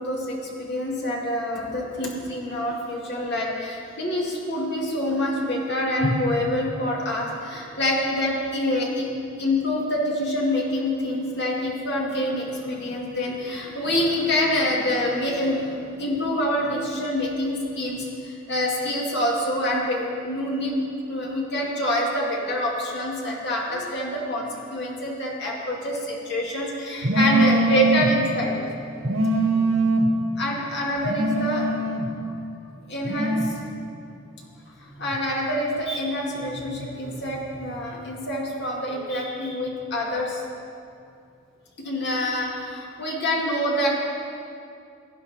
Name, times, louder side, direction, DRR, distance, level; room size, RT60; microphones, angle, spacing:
voice 1, 0.0-9.1 9.4-20.8 21.1-28.5 30.4-31.6 32.9-33.4 34.8-40.4 41.8-43.9, left 1 dB, 50° left, -3 dB, 2.2 m, -26 dB
voice 2, 27.0-28.1 29.0-30.1 31.0-32.1 33.0-33.5, right 2 dB, 70° right, -1 dB, 1.7 m, -22 dB
16.0 x 10.0 x 4.3 m, 2.5 s
head